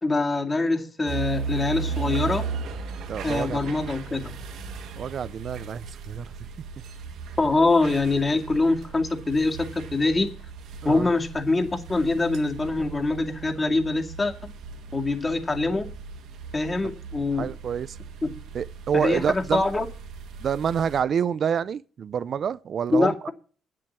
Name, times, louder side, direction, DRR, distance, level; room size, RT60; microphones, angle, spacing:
voice 1, 0.0-2.5 3.2-4.3 7.4-10.3 10.8-14.5 14.9-15.9 16.5-17.5 18.2-18.3 18.9-19.9 22.9-23.3, left 3 dB, 25° left, 2.2 m, -24 dB
sound 1, 1.1-21.0, right 5 dB, 80° right, 1.7 m, -37 dB
voice 2, 3.1-3.6 5.0-6.3 10.8-11.1 17.4-18.0 18.5-19.6 20.4-23.3, right 7 dB, 55° right, 0.5 m, -27 dB
9.8 x 7.7 x 7.2 m
cardioid pair, 90°, 0 cm